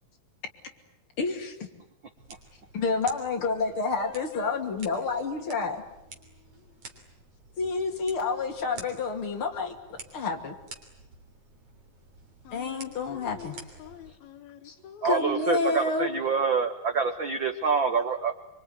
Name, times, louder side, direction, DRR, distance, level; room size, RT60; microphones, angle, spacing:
voice 1, 1.2-1.7 2.7-5.8 7.6-10.5 12.5-13.6 14.6-14.7 15.0-16.1, left 4 dB, 40° left, 3.1 m, -29 dB
sound 1, 2.2-14.2, right 3 dB, 40° right, 4.0 m, -50 dB
voice 2, 3.0-3.3 3.6-5.6 6.2-6.3 12.4-15.8, left 10 dB, 80° left, 3.3 m, -47 dB
voice 3, 15.0-18.3, right 5 dB, 80° right, 1.0 m, -26 dB
25.5 x 24.0 x 9.7 m
omnidirectional pair, 4.2 m